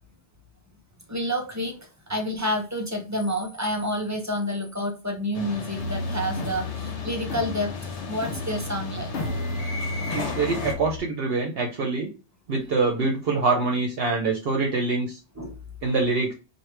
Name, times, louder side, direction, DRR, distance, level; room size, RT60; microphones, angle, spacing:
voice 1, 1.1-7.7 8.1-9.1 15.4-15.6, left 1 dB, 20° right, 3 dB, 0.6 m, -29 dB
sound 1, 5.3-10.7, left 3 dB, 80° left, 1.1 m, -35 dB
sound 2, 5.8-11.0, left 2 dB, 60° left, 0.9 m, -33 dB
voice 2, 10.1-12.1 12.5-15.2 15.8-16.3, right 3 dB, 65° right, 2 dB, 0.9 m, -25 dB
4.7 x 2.6 x 3.2 m, 0.32 s
omnidirectional pair, 1.2 m